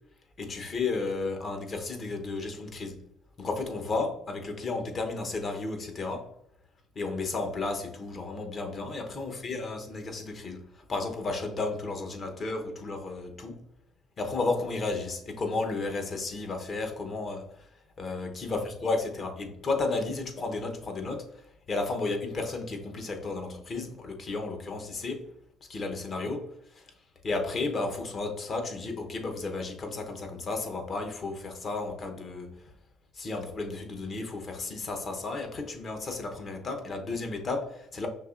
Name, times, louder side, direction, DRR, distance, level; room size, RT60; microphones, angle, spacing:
voice 1, 0.4-3.0 3.4-6.3 6.9-13.6 14.2-17.7 18.0-25.3 25.7-26.9 27.2-32.6 33.1-38.1, left 3 dB, 45° left, 0.9 m, -33 dB
5.8 x 2.9 x 2.5 m
supercardioid pair, 65°, 0 cm